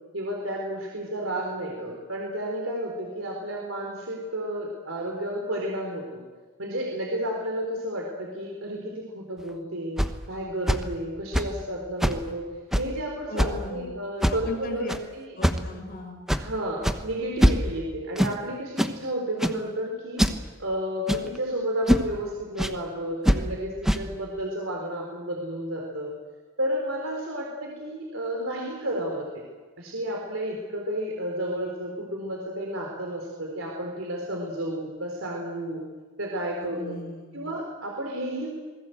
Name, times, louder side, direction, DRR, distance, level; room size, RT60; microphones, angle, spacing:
voice 1, 0.1-6.2 6.6-10.0 10.3-12.5 12.8-14.8 15.1-15.3 16.3-20.3 20.6-26.1 26.6-29.4 29.8-35.8 36.2-37.0 37.3-38.5, equal, 90° right, 0 dB, 3.9 m, -31 dB
sound 1, 9.4-9.5 10.0-10.1 10.7-10.8 11.3-11.6 12.0-12.2 12.7-12.9 13.4-13.6 14.2-14.5 14.9-15.0 15.4-15.7 16.3-16.5 16.8-17.0 17.4-17.8 18.2-18.4 18.8-19.0 19.4-19.6 20.2-20.4 21.1-21.4 21.9-22.1 22.6-22.7 23.2-23.4 23.8-24.0, equal, ahead, 1.0 m, -23 dB
voice 2, 13.3-14.0 14.3-14.9 15.3-16.2 36.6-37.5, left 1 dB, 45° left, 3 dB, 5.3 m, -37 dB
26.5 x 20.0 x 7.9 m, 1.4 s
head